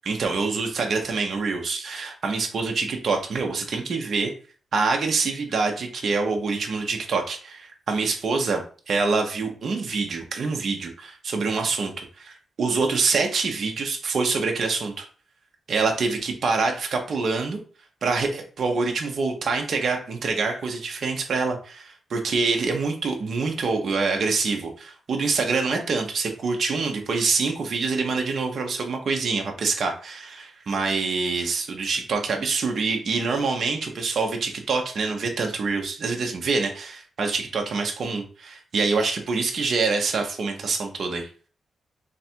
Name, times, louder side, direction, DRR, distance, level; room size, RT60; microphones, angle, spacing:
voice 1, 0.1-4.3 4.7-15.0 15.7-17.6 18.0-41.3, right 4 dB, 50° right, 3 dB, 0.7 m, -26 dB
3.3 x 2.4 x 4.3 m, 0.40 s
wide cardioid pair, 155°, 0 cm